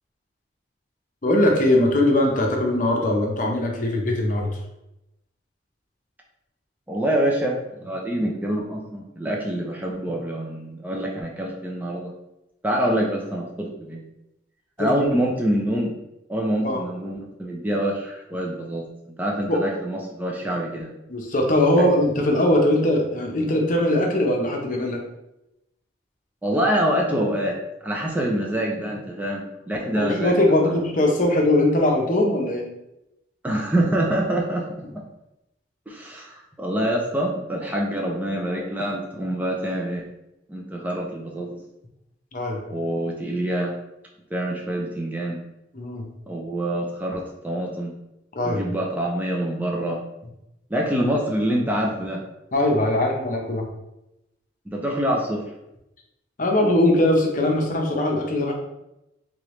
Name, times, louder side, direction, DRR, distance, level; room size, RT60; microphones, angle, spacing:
voice 1, 1.2-4.5 14.8-15.1 16.6-16.8 19.5-19.6 21.1-25.0 30.0-32.7 42.3-42.6 45.7-46.1 48.3-48.6 52.5-53.7 56.4-58.5, left 1 dB, 45° left, 1 dB, 0.7 m, -21 dB
voice 2, 6.9-12.1 12.6-14.0 14.8-16.0 16.3-18.8 19.2-20.9 21.8-21.9 26.4-27.6 27.8-30.3 30.6-30.8 33.4-34.7 34.9-35.0 35.9-40.0 40.5-41.6 42.7-43.7 44.3-45.4 46.3-47.9 48.4-50.0 50.7-52.2 54.7-55.5, right 1 dB, 10° right, -1 dB, 0.4 m, -25 dB
3.7 x 3.3 x 3.1 m, 0.89 s
head